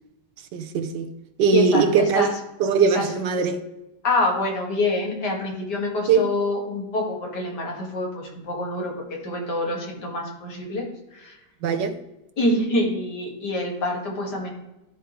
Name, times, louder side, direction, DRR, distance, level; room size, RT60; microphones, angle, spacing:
voice 1, 0.5-1.1 1.4-2.3 2.6-3.6 6.1-6.3 11.6-12.0, right 6 dB, 75° right, 1.4 m, -20 dB
voice 2, 1.5-2.3 2.9-3.1 4.0-11.4 12.4-14.5, left 2 dB, 70° left, 2.4 m, -26 dB
13.0 x 4.6 x 3.1 m
omnidirectional pair, 1.9 m